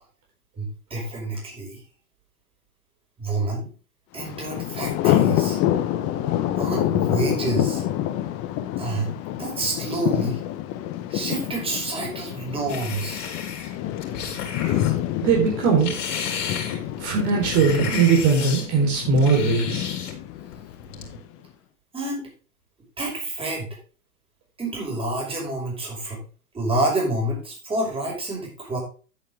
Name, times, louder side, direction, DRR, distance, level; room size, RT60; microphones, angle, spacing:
voice 1, 0.6-1.8 3.2-3.7 4.1-5.6 6.6-7.8 8.8-9.1 9.4-10.4 11.1-13.2 21.9-22.3 23.0-23.8 24.6-26.2 26.5-28.8, right 2 dB, 10° right, -1 dB, 5.3 m, -28 dB
Thunder, 4.2-21.2, left 12 dB, 30° left, 1.1 m, -27 dB
sound 1, 12.7-15.0 15.5-18.7 19.2-20.1 20.5-21.2, left 5 dB, 55° left, 3.9 m, -32 dB
voice 2, 15.2-16.0 17.0-19.9, right 5 dB, 40° right, -1 dB, 4.0 m, -20 dB
10.5 x 8.5 x 3.5 m, 0.37 s
hypercardioid pair, 110°, 45 cm